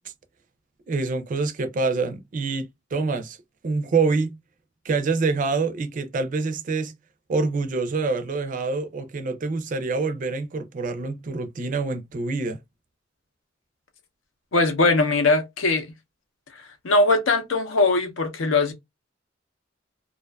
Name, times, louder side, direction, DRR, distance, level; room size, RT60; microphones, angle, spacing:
voice 1, 0.9-3.4 3.6-4.4 4.8-6.9 7.3-12.6, right 4 dB, 40° right, 0.4 m, -26 dB
voice 2, 14.5-15.9 16.8-18.7, left 3 dB, 80° left, 0.6 m, -20 dB
2.4 x 2.3 x 2.2 m
head